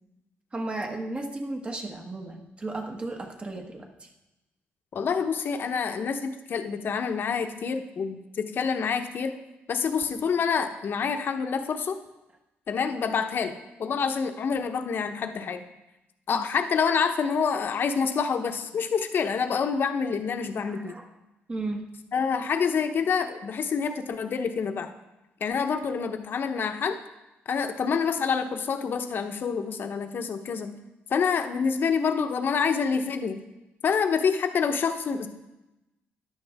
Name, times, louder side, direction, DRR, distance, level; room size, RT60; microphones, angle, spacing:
voice 1, 0.5-4.1 16.3-16.4 20.6-21.0 21.5-21.9, right 2 dB, 25° right, 3 dB, 1.5 m, -34 dB
voice 2, 4.9-9.3 9.7-12.0 12.7-13.5 13.8-15.6 16.3-20.9 22.1-24.9 25.4-27.0 27.5-30.7 31.1-33.4 33.8-35.3, left 6 dB, 55° left, 7 dB, 1.0 m, -27 dB
14.0 x 10.5 x 3.6 m, 0.98 s
cardioid pair, 105°, 4 cm